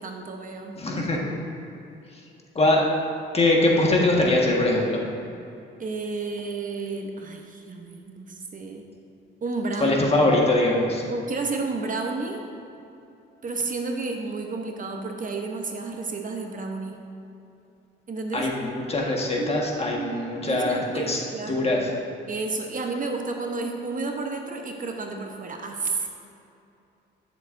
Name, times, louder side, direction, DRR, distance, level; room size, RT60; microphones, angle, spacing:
voice 1, 0.0-1.4 5.8-8.9 9.4-10.0 11.1-12.4 13.4-17.0 18.1-18.5 19.3-19.6 19.9-21.7 22.3-26.1, right 3 dB, 40° right, 3 dB, 0.9 m, -31 dB
voice 2, 0.8-1.2 2.5-2.8 3.3-5.0 9.8-11.0 18.3-20.8 21.1-21.2 21.5-21.9, left 2 dB, 30° left, -1 dB, 1.5 m, -22 dB
12.5 x 6.8 x 2.6 m, 2.8 s
cardioid pair, 90°, 20 cm